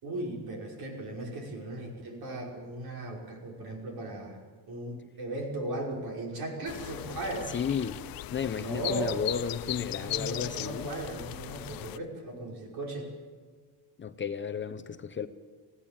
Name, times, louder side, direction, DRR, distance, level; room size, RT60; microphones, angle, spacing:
voice 1, 0.0-4.4 4.7-7.5 8.6-9.2 10.0-13.1, right 1 dB, 60° right, 0 dB, 5.6 m, -37 dB
sound 1, 6.6-12.0, left 15 dB, 55° left, 0.7 m, -38 dB
voice 2, 7.5-8.0 8.3-10.9 14.0-15.3, left 7 dB, 25° left, 10 dB, 0.9 m, -33 dB
20.5 x 16.0 x 9.0 m, 1.5 s
cardioid pair, 115°, 42 cm